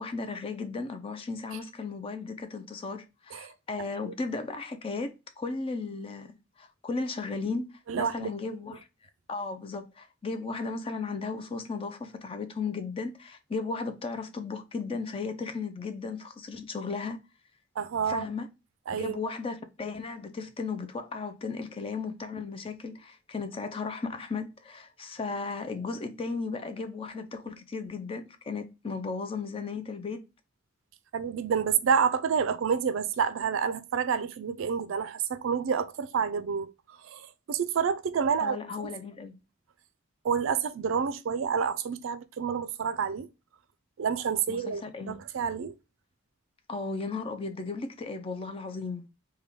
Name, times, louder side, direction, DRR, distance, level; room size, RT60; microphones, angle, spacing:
voice 1, 0.0-8.9 9.3-17.2 18.1-18.5 18.9-30.2 38.4-39.4 44.5-45.2 46.7-49.0, left 4 dB, 25° left, 0.3 m, -35 dB
voice 2, 7.9-8.3 17.8-18.3 18.9-19.2 31.1-36.7 37.0-38.9 40.2-43.3 44.0-45.8, right 6 dB, 65° right, 0.4 m, -29 dB
3.6 x 2.2 x 3.3 m
head